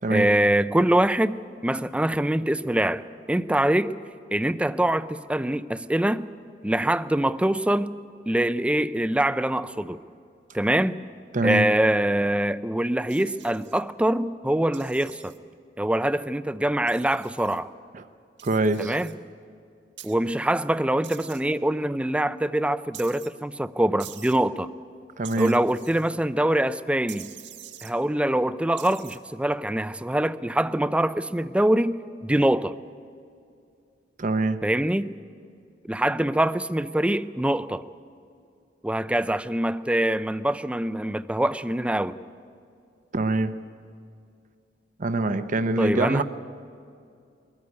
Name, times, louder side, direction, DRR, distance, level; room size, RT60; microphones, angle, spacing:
voice 1, 0.1-3.0 3.3-3.9 4.3-6.2 6.6-7.9 8.3-10.0 10.5-11.0 11.4-15.3 15.8-17.7 18.8-19.1 20.0-24.7 25.4-27.3 27.8-32.7 34.6-35.1 35.9-37.8 38.8-42.2 45.8-46.2, right 1 dB, 5° right, 14 dB, 0.4 m, -24 dB
voice 2, 11.3-11.7 17.9-18.0 18.4-19.0 25.2-25.6 34.2-34.6 43.1-43.6 45.0-46.2, right 2 dB, 45° right, 10 dB, 0.7 m, -24 dB
sound 1, 13.1-13.8 14.7-15.4 16.9-17.6 18.4-19.1 20.0-20.1 21.0-21.4 22.9-23.3 24.0-24.4 25.2-26.1 27.1-27.9 28.8-29.2, right 11 dB, 70° right, 1.3 m, -45 dB
21.5 x 14.5 x 9.5 m, 2.4 s
head